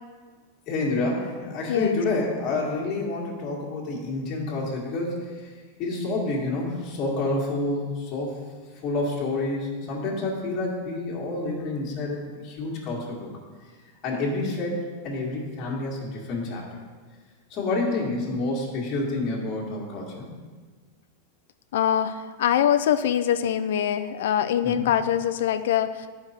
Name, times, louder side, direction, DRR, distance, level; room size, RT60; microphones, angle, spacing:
voice 1, 0.7-5.5 5.8-8.4 8.8-13.3 14.0-16.8 17.5-20.3 24.6-24.9, left 2 dB, 30° left, -3 dB, 1.7 m, -28 dB
voice 2, 21.7-26.1, left 10 dB, 75° left, 11 dB, 0.3 m, -23 dB
9.6 x 4.6 x 4.3 m, 1.5 s
supercardioid pair, 155°, 0 cm